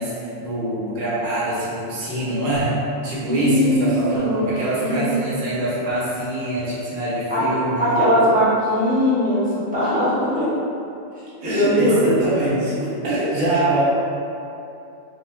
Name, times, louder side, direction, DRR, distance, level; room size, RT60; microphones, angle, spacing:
voice 1, 0.0-8.0 11.4-12.7 13.0-13.8, right 1 dB, 50° right, -9 dB, 0.7 m, -24 dB
voice 2, 3.2-4.5 4.8-5.1 7.3-7.4 7.8-10.5 11.4-12.0 13.2-13.3, equal, 10° right, -12 dB, 0.6 m, -20 dB
2.4 x 2.3 x 3.3 m, 2.7 s
omnidirectional pair, 1.3 m